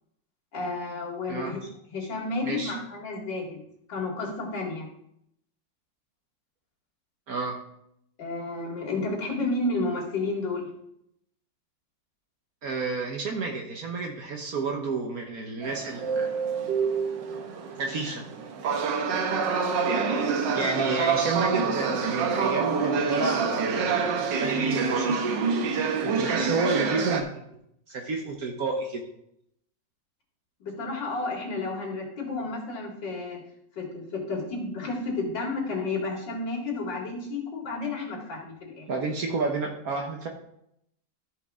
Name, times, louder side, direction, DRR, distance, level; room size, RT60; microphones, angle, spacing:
voice 1, 0.5-3.6 3.9-4.9 8.2-10.7 20.6-20.8 30.6-33.4 33.8-38.9, left 3 dB, 75° left, -2 dB, 3.0 m, -31 dB
voice 2, 2.4-2.7 7.3-7.6 12.6-16.3 17.8-18.2 20.5-25.3 26.0-27.4 27.9-29.0 38.9-40.3, right 3 dB, 55° right, 2 dB, 1.3 m, -30 dB
sound 1, 15.6-27.2, right 5 dB, 75° right, 1.6 m, -27 dB
14.0 x 5.3 x 3.6 m, 0.75 s
omnidirectional pair, 2.0 m